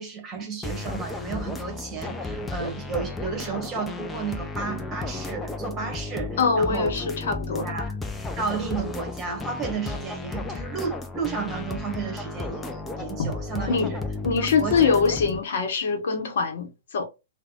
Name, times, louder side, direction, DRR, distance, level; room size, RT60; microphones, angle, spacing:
voice 1, 0.0-7.1 7.6-7.9 8.4-13.8 14.6-14.9, right 5 dB, 25° right, 1.3 m, -32 dB
sound 1, 0.6-15.4, left 3 dB, 10° left, 0.5 m, -33 dB
voice 2, 6.4-7.7 13.2-13.3 13.7-13.9 14.2-17.1, left 5 dB, 60° left, 0.9 m, -23 dB
3.3 x 2.2 x 3.6 m
figure-of-eight pair, 115°, 0 cm